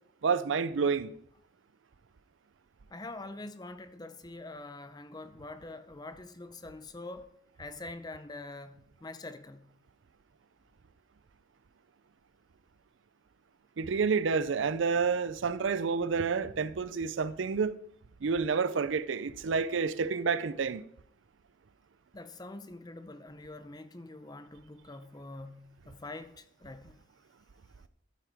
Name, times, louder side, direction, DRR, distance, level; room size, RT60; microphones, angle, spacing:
voice 1, 0.2-1.1 13.8-17.7 18.2-20.8, right 5 dB, 80° right, 0.5 m, -29 dB
voice 2, 2.9-7.3 7.6-9.8 22.1-27.1, left 2 dB, 20° left, 0.6 m, -45 dB
12.5 x 9.3 x 3.5 m
head